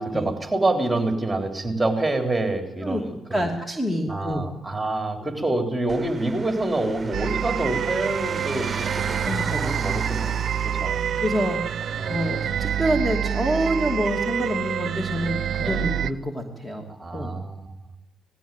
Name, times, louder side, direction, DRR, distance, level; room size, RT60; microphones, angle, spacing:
voice 1, 0.0-3.5 4.1-9.3 9.6-11.0 12.0-12.2 15.6-15.9 17.0-17.7, right 2 dB, 10° right, 5 dB, 3.7 m, -27 dB
voice 2, 3.3-4.4 9.2-9.8 11.2-16.8 17.1-17.3, equal, 10° left, 2 dB, 2.9 m, -27 dB
sound 1, 5.9-12.8, right 4 dB, 25° right, 1.2 m, -36 dB
sound 2, 7.1-16.1, right 9 dB, 60° right, 0.8 m, -27 dB
19.0 x 15.5 x 9.2 m, 0.86 s
cardioid pair, 90°, 0 cm